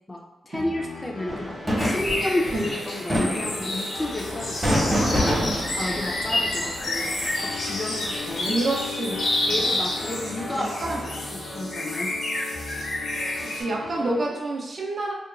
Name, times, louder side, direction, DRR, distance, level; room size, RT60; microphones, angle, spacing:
voice 1, 0.1-8.6 9.1-9.2 9.5-12.1, left 1 dB, 20° left, -1 dB, 0.4 m, -32 dB
sound 1, 0.5-14.3, left 3 dB, 85° left, 1.2 m, -38 dB
sound 2, 1.3-11.2, equal, 20° right, 0.8 m, -30 dB
sound 3, 1.8-13.6, left 1 dB, 70° left, 0.7 m, -30 dB
voice 2, 8.4-9.5 10.6-11.0 13.4-15.1, right 2 dB, 50° right, -2 dB, 0.5 m, -28 dB
2.9 x 2.2 x 2.4 m, 1.1 s
wide cardioid pair, 110°, 0 cm